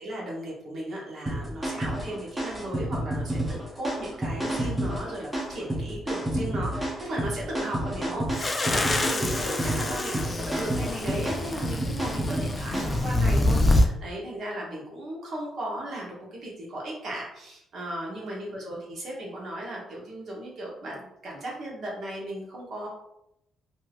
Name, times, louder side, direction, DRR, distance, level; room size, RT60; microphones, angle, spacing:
voice 1, 0.0-22.9, right 1 dB, 60° right, -4 dB, 1.0 m, -36 dB
sound 1, 1.3-13.1, right 1 dB, 5° right, 0.8 m, -30 dB
sound 2, 8.4-13.9, left 1 dB, 25° left, 0.4 m, -26 dB
3.1 x 2.6 x 2.4 m, 0.82 s
cardioid pair, 90°, 0 cm